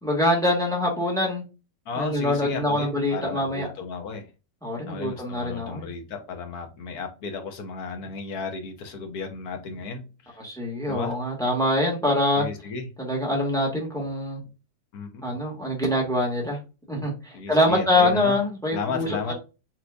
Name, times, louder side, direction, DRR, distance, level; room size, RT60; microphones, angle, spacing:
voice 1, 0.0-1.4 1.9-3.7 4.6-5.9 10.4-12.4 13.0-14.4 15.2-16.6 16.9-19.3, left 1 dB, ahead, -2 dB, 1.6 m, -24 dB
voice 2, 1.9-4.3 4.9-10.4 10.9-11.2 12.4-12.9 14.9-15.3 17.3-18.4 18.7-19.3, left 4 dB, 70° left, 5 dB, 1.5 m, -34 dB
6.0 x 3.2 x 2.4 m, 0.30 s
omnidirectional pair, 1.7 m